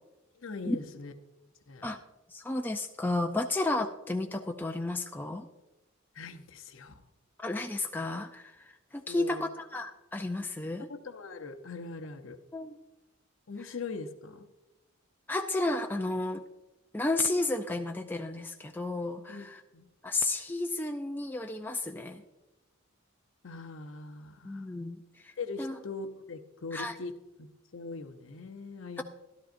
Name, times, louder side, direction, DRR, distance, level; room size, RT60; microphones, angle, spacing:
voice 1, 0.3-1.1 1.7-1.9 6.1-7.0 9.1-9.4 10.9-12.4 13.5-14.5 19.3-19.9 23.4-24.7 25.4-27.1 27.4-29.0, left 4 dB, 65° left, 7 dB, 0.7 m, -41 dB
voice 2, 2.3-5.5 7.4-10.9 12.5-12.8 15.3-16.4 16.9-19.6 20.0-22.2 24.4-25.3 25.6-25.8 26.7-26.9 29.0-29.1, left 2 dB, 10° left, 4 dB, 0.3 m, -32 dB
13.5 x 12.5 x 2.6 m, 1.0 s
head